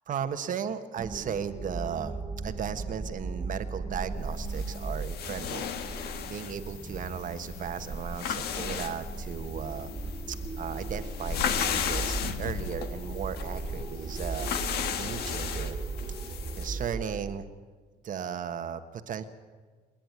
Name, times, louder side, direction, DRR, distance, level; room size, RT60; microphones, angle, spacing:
voice 1, 0.1-9.9 10.3-14.5 14.9-15.8 16.2-17.4 18.0-19.2, right 8 dB, 50° right, 9 dB, 1.4 m, -36 dB
sound 1, 1.0-17.3, right 3 dB, 25° right, 2.1 m, -37 dB
sound 2, 4.3-16.8, left 8 dB, 70° left, 1.6 m, -36 dB
30.0 x 10.0 x 9.7 m, 1.4 s
cardioid pair, 110°, 17 cm